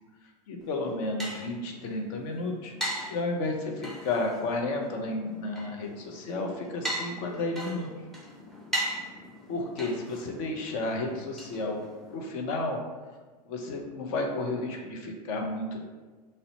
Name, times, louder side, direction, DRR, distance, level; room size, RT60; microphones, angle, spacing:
voice 1, 0.5-2.7 3.1-7.9 9.5-11.8 12.1-12.8 13.5-15.9, left 2 dB, 55° left, 2 dB, 0.6 m, -32 dB
sound 1, 0.6-12.2, right 1 dB, ahead, 0.5 m, -39 dB
2.7 x 2.1 x 3.9 m, 1.4 s
hypercardioid pair, 95°, 21 cm